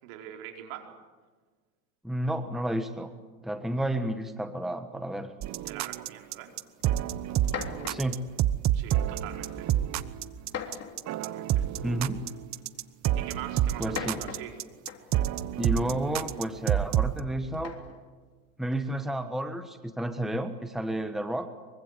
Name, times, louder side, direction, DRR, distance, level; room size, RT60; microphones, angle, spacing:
voice 1, 0.0-0.9 5.6-6.5 8.7-9.7 11.1-11.7 13.1-14.6, right 11 dB, 60° right, 3 dB, 4.7 m, -43 dB
voice 2, 2.0-3.1 3.4-5.3 7.9-8.3 11.8-12.2 13.8-14.2 15.6-17.8 18.6-21.5, right 1 dB, ahead, 8 dB, 1.4 m, -31 dB
sound 1, 5.4-17.2, right 12 dB, 35° right, 1.1 m, -28 dB
sound 2, 6.8-6.9 7.4-8.2 9.1-9.4 10.5-11.2 12.3-12.4 13.7-15.2 17.5-18.0, left 7 dB, 35° left, 3.5 m, -39 dB
24.5 x 24.0 x 8.3 m, 1.4 s
hypercardioid pair, 105°, 45 cm